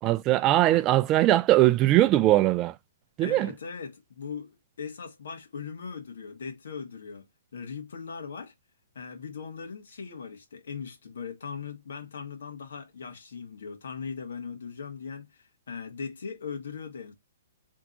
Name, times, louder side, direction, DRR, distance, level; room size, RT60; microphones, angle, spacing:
voice 1, 0.0-2.8 3.2-3.5, right 15 dB, 20° right, 0.3 m, -21 dB
voice 2, 3.2-7.3 7.5-8.5 9.0-17.1, left 6 dB, 75° left, 1.7 m, -39 dB
3.5 x 2.8 x 3.8 m
hypercardioid pair, 165°, 0 cm